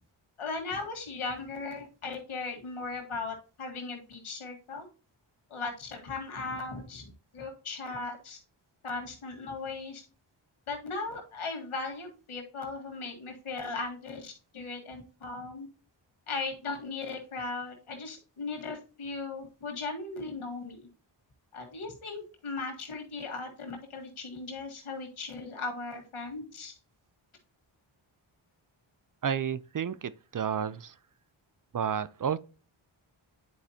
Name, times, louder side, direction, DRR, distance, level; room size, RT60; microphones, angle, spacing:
voice 1, 0.4-4.9 5.5-8.4 8.8-10.0 10.7-15.7 16.3-20.8 21.5-26.8, left 3 dB, 90° left, 1.9 m, -38 dB
voice 2, 29.2-30.9 31.7-32.4, right 7 dB, 45° right, 0.5 m, -31 dB
9.3 x 4.7 x 2.8 m
cardioid pair, 50°, 48 cm